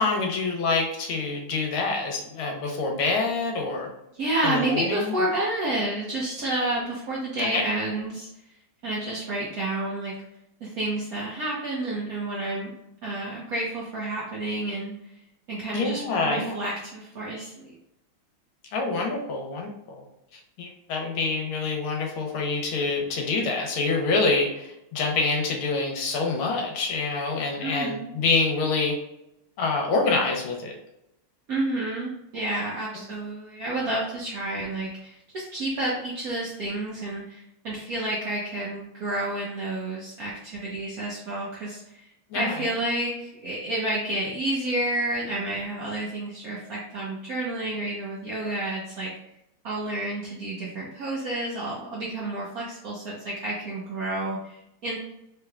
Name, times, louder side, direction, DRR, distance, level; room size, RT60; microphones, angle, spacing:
voice 1, 0.0-3.9 4.4-5.2 7.4-7.6 15.7-16.6 18.7-20.0 20.3-29.0 29.6-30.8 42.3-42.7, left 3 dB, 80° left, 1 dB, 1.5 m, -26 dB
voice 2, 4.1-8.3 8.8-10.1 10.6-12.7 13.0-14.9 15.5-17.8 27.6-28.1 31.5-42.1 42.3-49.1 49.6-55.0, right 1 dB, 70° right, -5 dB, 0.8 m, -30 dB
3.6 x 3.3 x 2.2 m, 0.86 s
omnidirectional pair, 2.3 m